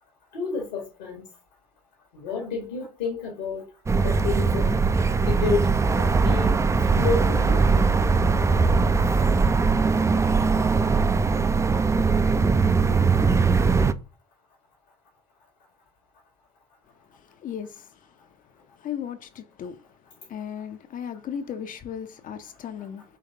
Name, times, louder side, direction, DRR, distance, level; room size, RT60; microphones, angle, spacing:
voice 1, 0.3-1.2 2.1-3.7 4.0-7.9, left 4 dB, 70° left, 1.0 m, -31 dB
sound 1, 3.9-13.9, right 4 dB, 15° right, 0.4 m, -21 dB
voice 2, 17.4-17.9 18.8-19.8 20.3-23.0, left 8 dB, 40° left, 0.5 m, -35 dB
5.2 x 3.2 x 2.6 m
figure-of-eight pair, 55°, 21 cm